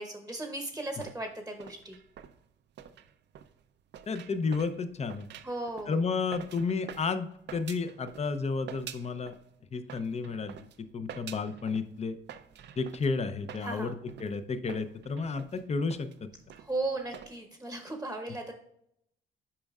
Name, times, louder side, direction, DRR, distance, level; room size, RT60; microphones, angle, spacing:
voice 1, 0.0-2.0 5.4-6.0 13.6-13.9 16.6-18.5, right 2 dB, 5° right, 4 dB, 0.9 m, -36 dB
sound 1, 0.7-8.4 8.7-9.5 9.8-17.4, right 9 dB, 60° right, 0.5 m, -48 dB
voice 2, 4.1-5.3 5.9-9.3 9.7-10.7 10.9-12.2 12.8-16.3, left 4 dB, 35° left, 11 dB, 0.6 m, -32 dB
8.6 x 5.3 x 2.4 m, 0.75 s
cardioid pair, 90°, 20 cm